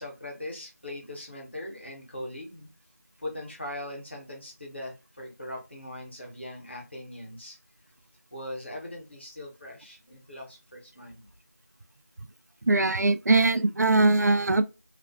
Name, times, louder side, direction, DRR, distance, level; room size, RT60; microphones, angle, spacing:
voice 1, 0.0-2.7 3.2-7.6 8.3-11.3, left 1 dB, 45° left, 0.9 m, -40 dB
voice 2, 12.7-14.6, right 2 dB, 80° right, 0.3 m, -21 dB
2.4 x 2.2 x 2.3 m
figure-of-eight pair, 180°, 9 cm